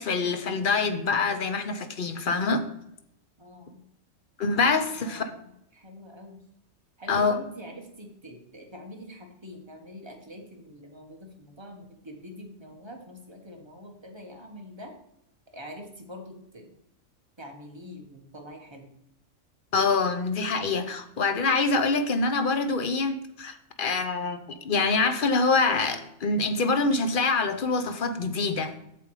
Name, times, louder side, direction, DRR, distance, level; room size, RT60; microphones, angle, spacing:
voice 1, 0.0-2.7 4.4-5.3 7.1-7.4 19.7-28.9, left 4 dB, 45° left, 8 dB, 0.8 m, -25 dB
voice 2, 3.4-3.8 5.0-5.4 5.7-6.4 7.0-14.9 15.5-16.7 17.4-18.9, equal, 20° right, 2 dB, 1.4 m, -44 dB
7.8 x 6.9 x 4.9 m, 0.80 s
omnidirectional pair, 1.5 m